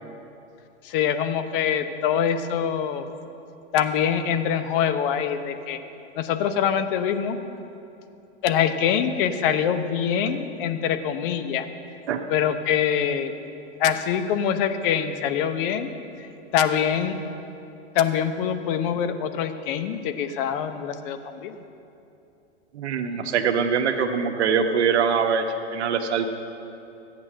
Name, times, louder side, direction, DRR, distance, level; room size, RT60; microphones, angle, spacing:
voice 1, 0.8-3.1 3.7-5.8 6.2-7.4 8.4-11.7 12.3-13.3 13.8-15.9 16.2-17.2 17.9-21.6, left 8 dB, 50° left, 9 dB, 1.0 m, -24 dB
voice 2, 22.7-25.4 25.7-26.3, right 6 dB, 70° right, 5 dB, 1.3 m, -23 dB
14.0 x 8.4 x 6.3 m, 2.8 s
hypercardioid pair, 120°, 34 cm